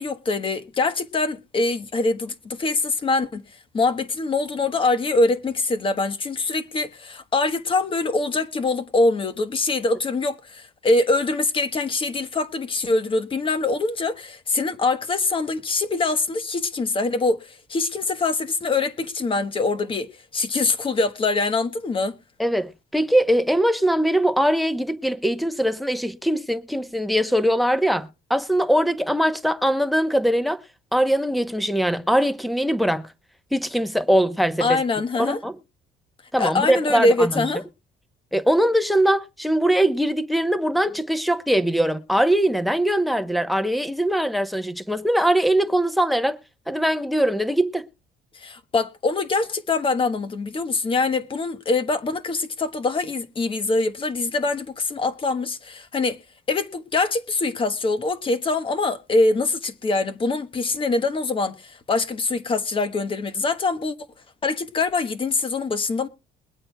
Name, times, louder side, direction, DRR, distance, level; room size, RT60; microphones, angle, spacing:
voice 1, 0.0-3.4 3.7-20.1 20.3-22.2 34.6-35.4 36.4-37.6 48.3-56.2 56.5-63.9 64.4-66.1, left 3 dB, 30° left, 1.2 m, -24 dB
voice 2, 22.4-30.6 30.9-33.0 33.5-34.8 35.2-35.5 36.3-37.4 38.3-46.4 46.7-47.9, right 1 dB, ahead, 0.9 m, -21 dB
22.0 x 8.6 x 2.3 m
cardioid pair, 110°, 17 cm